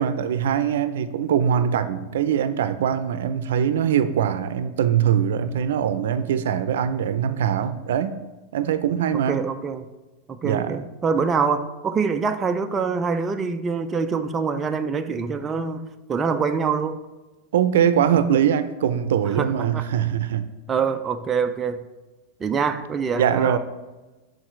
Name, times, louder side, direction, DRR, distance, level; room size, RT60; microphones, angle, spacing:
voice 1, 0.0-8.2 8.5-9.4 10.4-10.8 17.5-20.5 23.2-23.6, right 9 dB, 85° right, 12 dB, 0.4 m, -22 dB
voice 2, 9.1-9.9 10.3-17.0 19.3-19.8 20.7-21.8 22.4-23.6, right 5 dB, 15° right, 7 dB, 0.3 m, -25 dB
11.5 x 4.0 x 3.1 m, 1.1 s
supercardioid pair, 155°, 0 cm